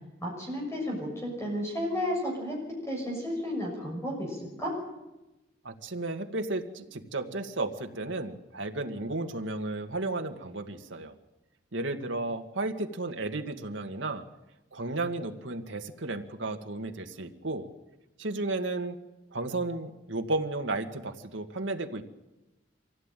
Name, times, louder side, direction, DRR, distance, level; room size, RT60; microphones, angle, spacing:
voice 1, 0.2-4.7, left 1 dB, 15° left, -1 dB, 6.5 m, -33 dB
voice 2, 5.6-11.1 11.7-14.2 14.7-17.7 18.2-19.0 19.3-22.0, right 2 dB, 80° right, 5 dB, 1.9 m, -33 dB
25.0 x 16.0 x 9.1 m, 1.0 s
head